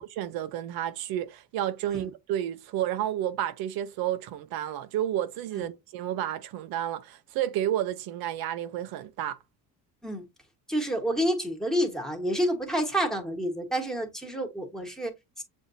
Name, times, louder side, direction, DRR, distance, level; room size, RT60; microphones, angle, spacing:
voice 1, 0.0-9.4, right 11 dB, 80° right, 0.6 m, -31 dB
voice 2, 10.7-15.1, equal, ahead, 1.3 m, -29 dB
7.3 x 2.6 x 2.6 m
cardioid pair, 125°, 36 cm